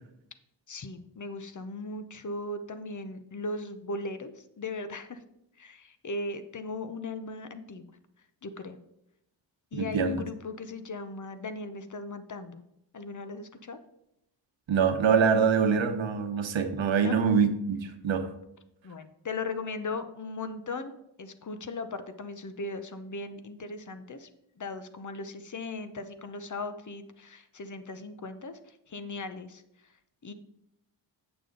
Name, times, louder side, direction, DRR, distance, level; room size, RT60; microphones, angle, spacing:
voice 1, 0.7-5.2 5.6-7.8 8.4-8.8 9.7-12.6 12.9-13.8 17.0-17.2 18.8-24.3 24.6-29.9 30.2-30.3, left 3 dB, 40° left, 10 dB, 0.7 m, -38 dB
voice 2, 9.7-10.2 14.7-18.3, right 6 dB, 75° right, 7 dB, 1.0 m, -25 dB
8.2 x 6.9 x 3.8 m, 0.82 s
wide cardioid pair, 115°, 45 cm